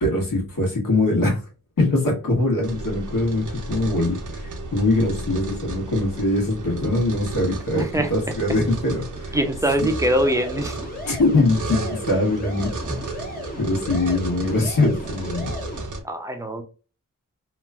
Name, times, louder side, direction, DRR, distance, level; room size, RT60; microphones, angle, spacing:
voice 1, 0.0-1.4 1.8-9.4 11.1-13.0 13.6-15.5, left 2 dB, 85° left, 1.3 m, -22 dB
sound 1, 2.6-16.0, right 2 dB, 65° right, 0.6 m, -33 dB
voice 2, 7.8-8.1 9.3-10.8 16.0-16.6, right 1 dB, 10° right, 0.4 m, -22 dB
sound 2, 10.0-15.9, left 2 dB, 30° left, 0.7 m, -37 dB
2.9 x 2.4 x 2.2 m
wide cardioid pair, 120°, 33 cm